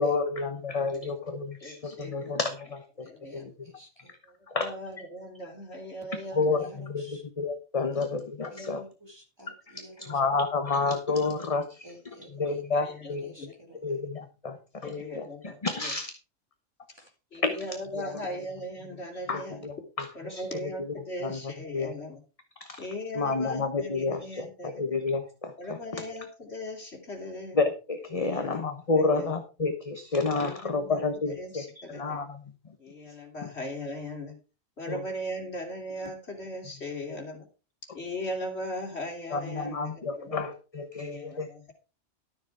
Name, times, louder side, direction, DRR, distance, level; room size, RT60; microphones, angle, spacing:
voice 1, 0.0-3.5 4.5-4.7 6.3-8.8 10.0-11.9 12.3-13.2 13.8-16.1 17.4-17.6 18.0-18.2 18.9-19.0 19.3-21.9 23.1-26.0 27.5-32.5 33.1-33.2 33.4-33.5 34.9-35.0 39.3-41.7, left 4 dB, 30° left, 7 dB, 1.1 m, -30 dB
voice 2, 1.6-2.3 3.1-3.5 4.5-6.8 8.6-8.9 12.7-13.5 14.8-15.6 15.8-15.9 17.3-19.6 20.1-22.2 22.8-25.0 25.6-27.6 28.1-28.6 28.9-29.3 30.3-31.0 31.3-32.2 32.8-34.3 34.8-37.4 37.9-40.4 41.0-41.7, left 1 dB, 55° left, 2 dB, 3.1 m, -38 dB
voice 3, 3.0-4.1 6.2-6.3 6.6-7.2 8.5-10.2 11.8-14.0 16.9-17.1, equal, 20° right, 0 dB, 4.1 m, -52 dB
12.5 x 7.1 x 4.8 m, 0.33 s
omnidirectional pair, 1.3 m